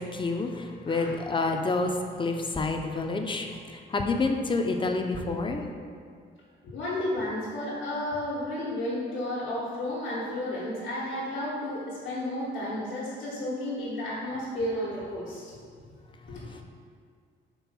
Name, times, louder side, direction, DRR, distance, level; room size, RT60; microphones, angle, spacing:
voice 1, 0.0-5.6 16.4-16.6, left 3 dB, 25° left, 4 dB, 0.6 m, -29 dB
voice 2, 0.9-1.2 6.6-15.4 16.2-16.6, left 1 dB, 75° left, -8 dB, 1.5 m, -32 dB
4.5 x 3.9 x 5.4 m, 2.2 s
cardioid pair, 90°, 20 cm